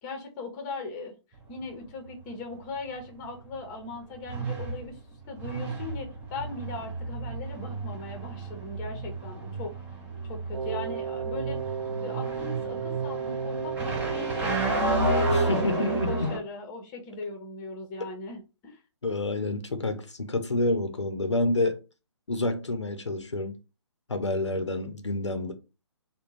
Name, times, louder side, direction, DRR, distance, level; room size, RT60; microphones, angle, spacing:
voice 1, 0.0-1.1 1.5-5.0 5.3-9.7 10.2-11.6 11.9-18.8, left 3 dB, 20° left, 0.8 m, -39 dB
sound 1, 1.3-16.4, right 2 dB, 10° right, 0.7 m, -32 dB
Wind instrument woodwind instrument, 10.5-16.3, right 7 dB, 75° right, 0.5 m, -34 dB
voice 2, 15.3-16.3 19.0-21.8 22.3-23.6 24.1-25.5, left 2 dB, 75° left, 0.7 m, -28 dB
3.6 x 2.2 x 4.0 m
figure-of-eight pair, 135°, 15 cm